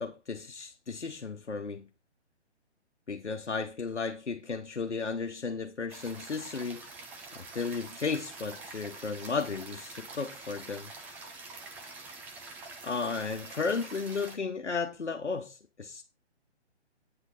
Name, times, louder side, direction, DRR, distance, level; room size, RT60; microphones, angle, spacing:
voice 1, 0.0-1.9 3.1-6.8 7.3-10.9 12.8-16.0, left 4 dB, 80° left, 1.2 m, -34 dB
sound 1, 5.9-14.4, right 3 dB, 5° right, 0.5 m, -46 dB
9.0 x 8.1 x 4.1 m
figure-of-eight pair, 135°, 34 cm